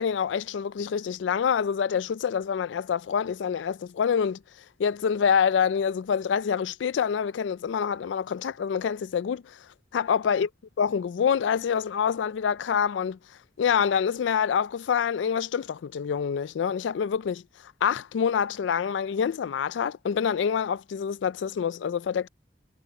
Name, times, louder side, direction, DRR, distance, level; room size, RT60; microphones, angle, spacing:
voice 1, 0.0-4.4 4.8-9.6 9.9-10.5 10.8-13.2 13.6-17.4 17.8-22.3, left 7 dB, 85° left, 0.4 m, -26 dB
head